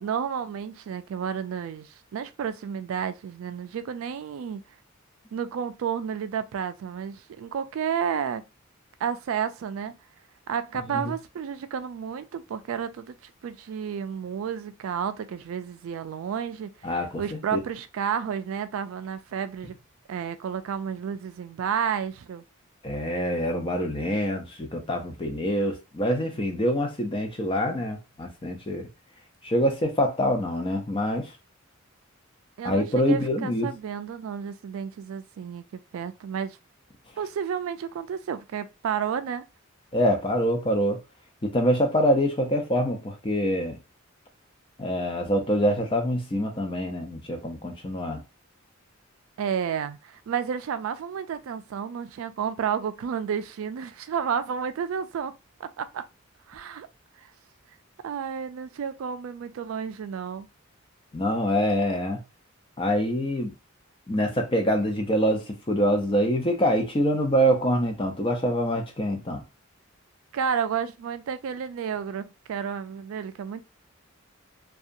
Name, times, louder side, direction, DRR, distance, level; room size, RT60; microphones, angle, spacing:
voice 1, 0.0-4.6 5.3-8.4 9.0-10.0 10.5-16.7 17.2-19.7 20.1-22.4 32.6-36.6 37.2-39.4 49.4-55.3 55.6-56.0 56.5-56.9 58.0-60.5 70.3-73.6, right 7 dB, 75° right, 0.3 m, -31 dB
voice 2, 16.8-17.6 22.8-28.9 29.4-31.3 32.6-33.7 39.9-41.0 41.4-43.8 44.8-48.2 61.1-62.2 62.8-63.5 64.1-69.4, equal, 25° left, 0.6 m, -25 dB
2.7 x 2.3 x 2.5 m
head